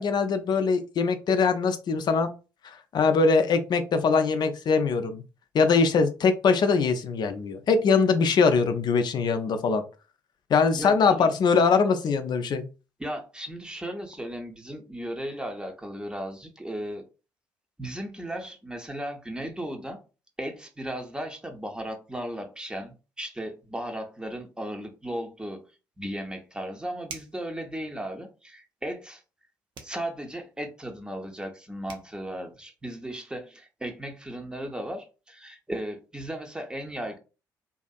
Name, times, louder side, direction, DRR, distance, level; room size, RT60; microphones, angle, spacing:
voice 1, 0.0-2.3 2.9-5.2 5.5-9.8 10.5-12.6, left 5 dB, 45° left, 8 dB, 0.5 m, -22 dB
voice 2, 10.7-11.3 13.0-17.0 17.8-20.0 20.4-25.6 26.0-29.2 29.8-37.2, right 1 dB, 10° right, 4 dB, 0.8 m, -36 dB
sound 1, 27.1-27.5 29.7-30.0 31.5-31.6 31.9-32.1, right 5 dB, 50° right, 0.6 m, -43 dB
2.7 x 2.4 x 2.3 m, 0.32 s
figure-of-eight pair, 45°, 10 cm